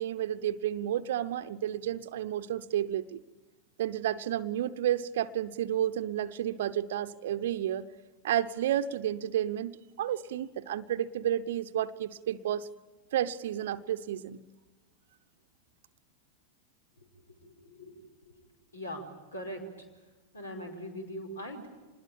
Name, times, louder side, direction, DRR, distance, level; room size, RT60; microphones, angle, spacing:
voice 1, 0.0-3.2 3.8-7.9 8.2-12.7 13.1-14.4, right 11 dB, 55° right, 10 dB, 0.8 m, -31 dB
voice 2, 17.1-18.0 18.2-18.4 18.7-19.0 19.3-19.6 20.3-21.7, equal, 75° left, 4 dB, 5.1 m, -41 dB
26.5 x 21.0 x 8.9 m, 1.2 s
figure-of-eight pair, 90°, 0 cm